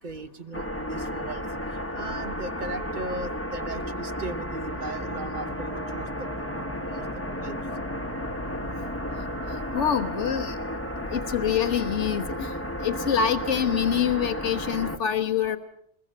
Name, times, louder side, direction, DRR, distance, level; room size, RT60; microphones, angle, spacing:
voice 1, 0.0-6.5 6.9-7.6, right 2 dB, 45° right, 11 dB, 1.1 m, -38 dB
sound 1, 0.5-15.0, equal, 10° left, 1.2 m, -33 dB
sound 2, 4.7-10.5, right 1 dB, 65° right, 4.4 m, -47 dB
voice 2, 9.7-10.6 11.1-12.5 12.8-15.6, left 8 dB, 70° left, 7 dB, 1.6 m, -25 dB
22.0 x 21.5 x 7.7 m, 0.73 s
omnidirectional pair, 1.2 m